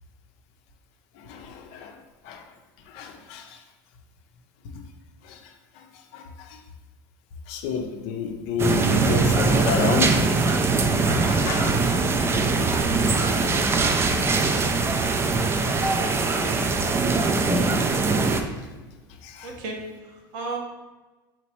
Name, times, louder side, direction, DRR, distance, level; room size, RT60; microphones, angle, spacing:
voice 1, 1.2-2.0 2.2-2.4 2.9-3.6 5.2-6.6 7.5-10.2 11.2-12.0 12.3-12.5 13.6-13.8 14.1-14.6 19.2-19.5, left 6 dB, 60° left, 4 dB, 0.6 m, -31 dB
sound 1, 8.6-18.4, right 3 dB, 20° right, 0.4 m, -22 dB
voice 2, 19.4-20.6, right 3 dB, 70° right, 1 dB, 0.8 m, -36 dB
4.3 x 3.0 x 3.0 m, 1.2 s
hypercardioid pair, 90°, 12 cm